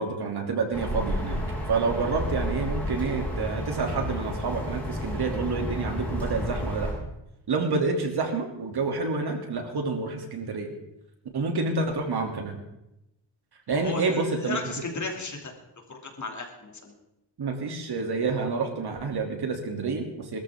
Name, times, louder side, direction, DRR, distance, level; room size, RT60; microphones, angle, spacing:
voice 1, 0.0-1.4 1.7-6.9 7.5-10.7 11.3-12.6 13.7-14.6 17.4-20.4, right 4 dB, 60° right, 2 dB, 3.0 m, -28 dB
sound 1, 0.7-6.9, equal, 5° left, 7.6 m, -31 dB
voice 2, 13.7-15.5 15.9-16.9, left 3 dB, 40° left, 2 dB, 2.8 m, -35 dB
21.0 x 13.5 x 3.7 m, 0.88 s
wide cardioid pair, 115°, 43 cm